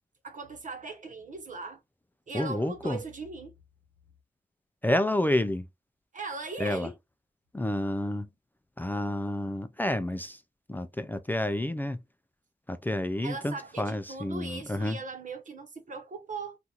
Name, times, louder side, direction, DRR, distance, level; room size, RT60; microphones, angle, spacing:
voice 1, 0.2-1.8 2.3-3.5 6.1-7.0 13.2-16.6, right 3 dB, 55° right, 1.0 m, -39 dB
voice 2, 2.3-3.0 4.8-5.7 6.6-6.9 7.5-8.3 8.8-10.4 10.7-12.0 12.7-15.0, left 1 dB, 10° left, 0.3 m, -29 dB
2.9 x 2.4 x 3.7 m
wide cardioid pair, 105°, 15 cm